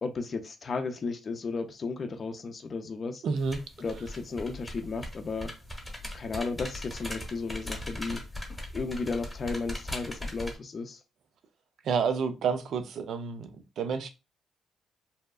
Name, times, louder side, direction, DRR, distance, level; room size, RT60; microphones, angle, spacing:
voice 1, 0.0-3.2 3.8-5.5 6.1-8.2 8.7-11.0, left 4 dB, 40° left, 0.5 m, -34 dB
voice 2, 3.2-3.6 11.8-13.5 13.8-14.1, right 6 dB, 70° right, 0.4 m, -29 dB
sound 1, 3.4-10.5, left 1 dB, 5° left, 0.9 m, -39 dB
2.7 x 2.2 x 2.3 m
cardioid pair, 90°, 0 cm